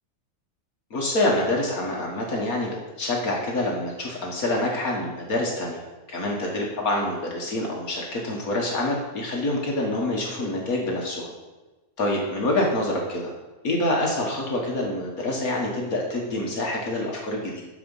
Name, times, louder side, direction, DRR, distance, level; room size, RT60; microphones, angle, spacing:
voice 1, 0.9-11.3 12.0-13.3 13.6-17.6, left 1 dB, 65° left, -1 dB, 1.9 m, -26 dB
13.0 x 4.9 x 5.5 m, 1.2 s
omnidirectional pair, 1.6 m